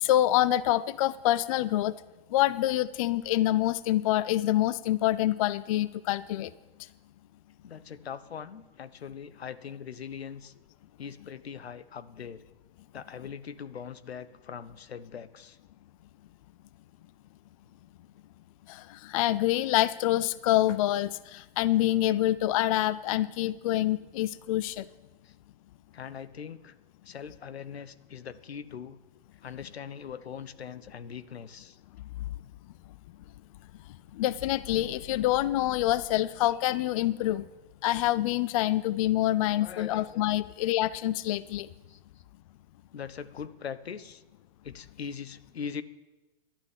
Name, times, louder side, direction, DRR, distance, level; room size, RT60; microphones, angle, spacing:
voice 1, 0.0-1.9 2.3-6.5 18.7-24.8 34.1-37.4 37.8-41.7, left 14 dB, 35° left, 17 dB, 0.4 m, -26 dB
voice 2, 7.6-10.5 11.0-12.4 12.9-15.6 25.2-25.3 25.9-26.7 27.0-29.0 29.4-31.8 39.6-40.2 41.9-42.0 42.9-44.2 44.6-45.8, left 7 dB, 80° left, 15 dB, 0.9 m, -41 dB
11.5 x 9.6 x 7.4 m, 1.1 s
hypercardioid pair, 125°, 31 cm